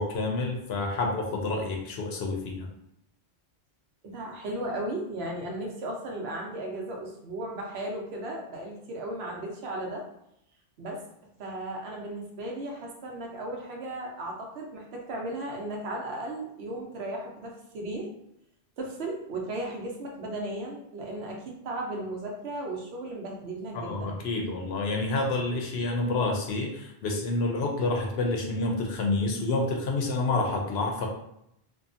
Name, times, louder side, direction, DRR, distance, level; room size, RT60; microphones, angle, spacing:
voice 1, 0.0-2.7 23.7-31.1, left 2 dB, 70° left, 1 dB, 0.8 m, -28 dB
voice 2, 4.0-10.1 10.8-11.0 11.4-18.1 18.8-24.1, right 1 dB, 70° right, -1 dB, 0.9 m, -35 dB
2.7 x 2.3 x 2.4 m, 0.77 s
omnidirectional pair, 1.2 m